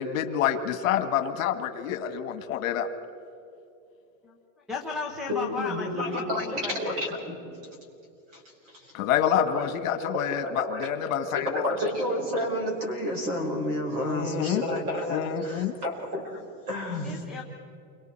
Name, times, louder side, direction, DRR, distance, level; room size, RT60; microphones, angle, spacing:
voice 1, 0.0-2.9 8.9-11.7 14.0-14.7 15.1-15.7, left 9 dB, 65° left, 8 dB, 1.7 m, -27 dB
voice 2, 4.7-7.0 17.0-17.4, left 4 dB, ahead, -6 dB, 0.6 m, -35 dB
voice 3, 5.3-7.5 8.3-8.9 9.5-9.7 10.1-10.9 11.3-16.4 16.7-17.2, left 1 dB, 30° right, 1 dB, 5.1 m, -31 dB
29.0 x 24.0 x 4.5 m, 2.7 s
supercardioid pair, 180°, 44 cm